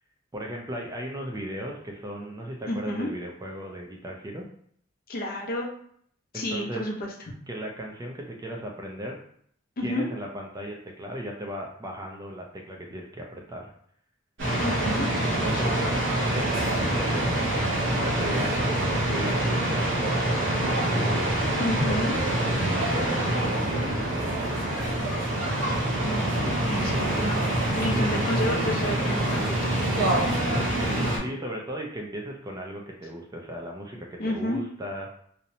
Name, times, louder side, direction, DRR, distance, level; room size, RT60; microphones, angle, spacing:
voice 1, 0.3-4.5 6.3-6.9 7.5-9.2 9.8-13.7 15.4-15.8 16.3-17.3 17.8-22.5 22.9-24.9 26.8-27.0 28.0-28.1 30.5-35.2, equal, 20° right, 0 dB, 0.3 m, -37 dB
voice 2, 2.7-3.1 5.1-5.7 6.3-7.1 9.8-10.0 14.6-15.1 15.5-15.9 21.6-22.2 26.0-27.4 27.7-29.8 34.2-34.6, left 1 dB, 45° left, -1 dB, 0.6 m, -30 dB
sound 1, 14.4-31.2, right 1 dB, 65° right, 0.8 m, -25 dB
2.8 x 2.0 x 2.6 m, 0.64 s
head